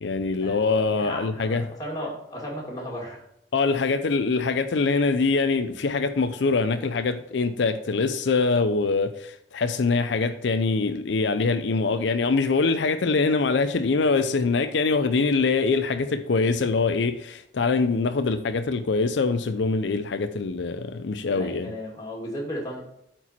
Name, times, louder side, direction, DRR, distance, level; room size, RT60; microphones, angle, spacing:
voice 1, 0.0-1.7 3.5-21.7, left 4 dB, 70° left, 0.5 m, -24 dB
voice 2, 0.9-3.2 21.3-22.8, equal, 20° left, 2.4 m, -35 dB
8.1 x 4.5 x 4.3 m
head